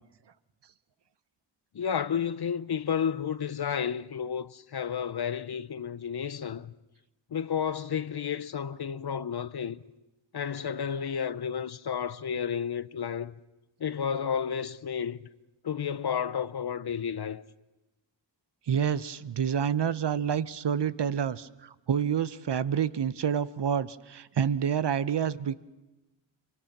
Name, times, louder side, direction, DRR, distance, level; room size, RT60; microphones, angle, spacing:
voice 1, 1.7-6.7 7.3-9.8 10.3-13.3 13.8-15.2 15.6-17.4, left 7 dB, 55° left, 0.7 m, -31 dB
voice 2, 18.7-25.5, right 8 dB, 60° right, 0.8 m, -28 dB
25.0 x 24.5 x 6.0 m
wide cardioid pair, 70°, 47 cm